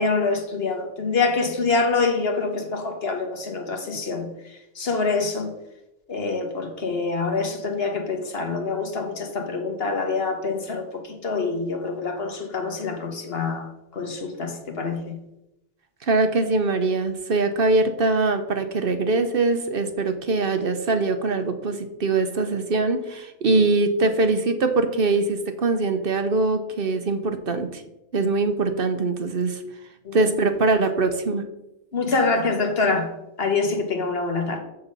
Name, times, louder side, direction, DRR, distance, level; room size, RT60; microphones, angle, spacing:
voice 1, 0.0-5.5 6.1-15.2 23.5-23.6 30.0-30.3 31.9-34.6, left 4 dB, 60° left, 4 dB, 1.5 m, -26 dB
voice 2, 16.0-27.8 28.1-29.6 30.1-31.5, right 3 dB, 60° right, 7 dB, 1.0 m, -22 dB
7.1 x 6.8 x 5.3 m, 0.90 s
omnidirectional pair, 1.2 m